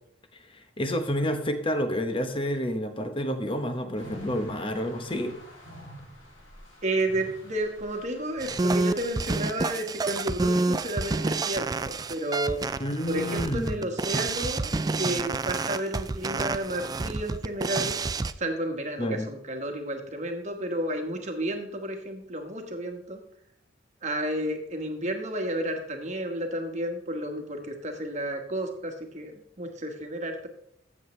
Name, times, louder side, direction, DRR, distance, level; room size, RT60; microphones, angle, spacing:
voice 1, 0.5-5.3 12.8-13.9 19.0-19.3, equal, 25° left, 7 dB, 1.0 m, -29 dB
sound 1, 3.9-9.1, equal, 80° left, 3.0 m, -47 dB
voice 2, 6.8-12.6 13.1-18.0 18.4-23.2 24.0-30.5, right 1 dB, 40° right, 4 dB, 1.4 m, -32 dB
sound 2, 8.4-18.3, right 3 dB, 20° right, 0.3 m, -28 dB
14.0 x 7.4 x 3.2 m, 0.72 s
head